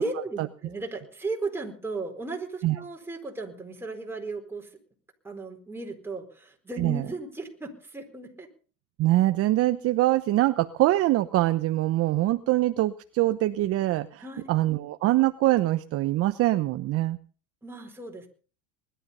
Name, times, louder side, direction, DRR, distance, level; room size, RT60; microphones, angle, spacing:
voice 1, 0.0-4.8 5.2-8.5 14.2-14.6 17.6-18.3, right 3 dB, 5° right, 2 dB, 4.4 m, -35 dB
voice 2, 9.0-14.2 14.5-17.2, right 16 dB, 40° right, 11 dB, 0.9 m, -23 dB
20.5 x 12.5 x 5.6 m, 0.40 s
supercardioid pair, 135°, 35 cm